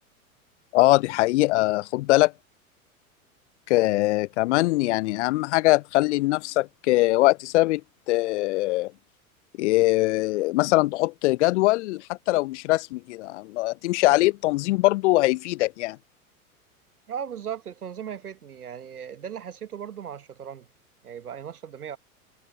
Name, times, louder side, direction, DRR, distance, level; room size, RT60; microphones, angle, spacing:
voice 1, 0.7-2.3 3.7-7.8 8.1-8.9 9.6-16.0, left 19 dB, 50° left, 0.8 m, -22 dB
voice 2, 17.1-20.7 21.0-22.0, right 8 dB, 85° right, 1.1 m, -37 dB
figure-of-eight pair, 95°, 44 cm